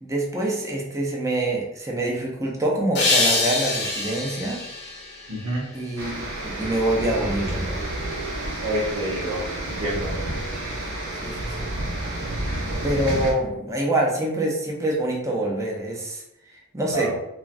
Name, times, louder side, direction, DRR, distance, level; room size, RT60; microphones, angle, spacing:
voice 1, 0.0-4.6 5.7-7.8 11.2-11.7 12.8-16.2 16.7-17.1, right 1 dB, 15° right, -2 dB, 0.5 m, -25 dB
sound 1, 3.0-6.1, left 3 dB, 55° left, 0.7 m, -25 dB
voice 2, 5.3-5.6 8.6-10.2 16.9-17.1, right 1 dB, 85° right, -5 dB, 0.9 m, -28 dB
sound 2, 6.0-13.3, right 1 dB, 60° right, 0.7 m, -30 dB
3.0 x 2.3 x 2.5 m, 0.86 s
head